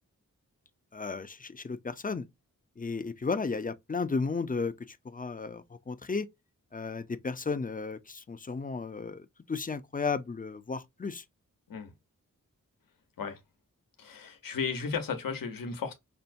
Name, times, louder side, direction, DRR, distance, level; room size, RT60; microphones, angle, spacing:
voice 1, 0.9-2.3 2.8-6.3 6.7-11.2, left 4 dB, 25° left, 0.5 m, -34 dB
voice 2, 14.0-15.9, left 5 dB, 85° left, 1.0 m, -34 dB
5.6 x 2.1 x 2.5 m
cardioid pair, 65°, 33 cm